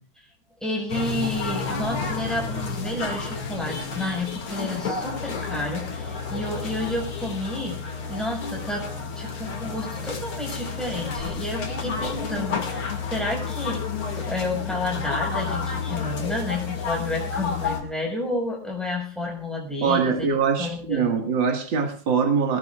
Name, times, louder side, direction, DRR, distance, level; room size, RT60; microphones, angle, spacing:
voice 1, 0.6-8.9 9.1-21.2, left 2 dB, ahead, -1 dB, 6.1 m, -30 dB
sound 1, 0.9-17.8, left 5 dB, 85° left, 3.2 m, -30 dB
voice 2, 19.8-22.6, right 6 dB, 65° right, 2 dB, 2.7 m, -23 dB
21.5 x 18.5 x 2.5 m, 0.40 s
omnidirectional pair, 2.3 m